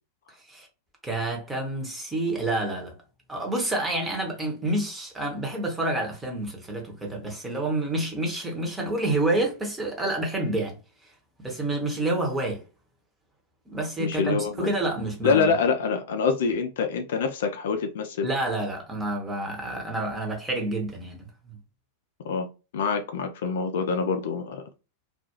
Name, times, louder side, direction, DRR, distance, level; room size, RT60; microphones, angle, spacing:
voice 1, 1.0-2.9 3.3-10.8 11.4-12.6 13.7-15.6 18.2-21.6, right 2 dB, 10° right, 0.9 m, -28 dB
voice 2, 14.0-14.7 15.2-18.3 22.2-22.5 22.7-24.6, left 5 dB, 60° left, 0.4 m, -25 dB
2.3 x 2.2 x 2.9 m
figure-of-eight pair, 90°, 0 cm